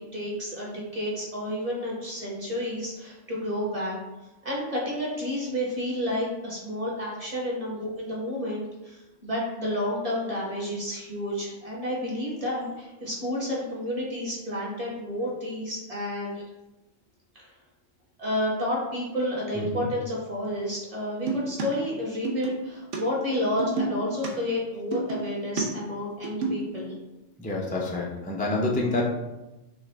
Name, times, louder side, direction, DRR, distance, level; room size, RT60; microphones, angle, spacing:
voice 1, 0.0-4.0 4.4-16.4 17.3-17.5 18.2-26.9, left 1 dB, 30° right, -5 dB, 1.3 m, -30 dB
voice 2, 19.5-19.9 27.4-29.1, left 2 dB, 15° left, -3 dB, 0.3 m, -27 dB
sound 1, 21.3-21.7 22.2-22.6 22.9-23.0 23.6-24.3 24.9-25.6 26.1-26.7, right 4 dB, 75° right, 1.1 m, -29 dB
6.2 x 2.5 x 3.3 m, 1.0 s
omnidirectional pair, 1.3 m